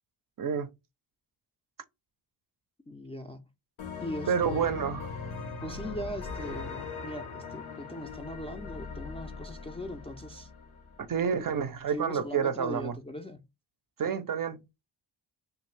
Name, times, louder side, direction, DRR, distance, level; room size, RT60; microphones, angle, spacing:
voice 1, 0.4-0.7 4.3-5.0 11.1-12.9 14.0-14.6, right 7 dB, 45° right, 0.5 m, -29 dB
voice 2, 2.9-3.5 4.0-4.7 5.6-10.5 11.2-11.3 11.9-13.4, equal, 15° left, 0.3 m, -40 dB
sound 1, 3.8-11.4, left 4 dB, 90° left, 0.7 m, -40 dB
2.6 x 2.4 x 3.1 m
cardioid pair, 60°, 46 cm